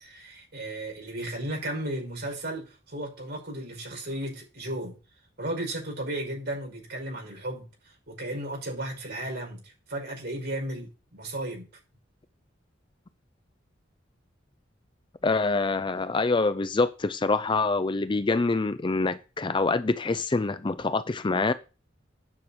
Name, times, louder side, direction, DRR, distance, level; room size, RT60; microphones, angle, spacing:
voice 1, 0.0-5.0 5.4-7.7 8.1-11.7, right 1 dB, 55° right, 5.6 m, -34 dB
voice 2, 15.2-21.5, left 3 dB, 25° left, 0.5 m, -25 dB
9.7 x 6.1 x 5.1 m
head